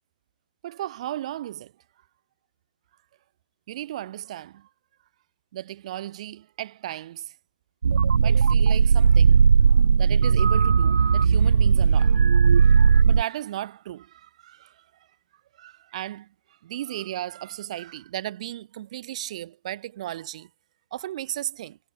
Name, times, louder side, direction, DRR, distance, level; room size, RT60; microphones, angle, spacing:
voice 1, 0.6-1.7 3.7-4.7 5.5-7.4 8.2-15.1 15.5-20.5 20.9-21.8, right 13 dB, 45° right, 4.9 m, -36 dB
sound 1, 7.8-13.2, right 6 dB, 80° right, 1.4 m, -17 dB
hypercardioid pair, 155°, 5 cm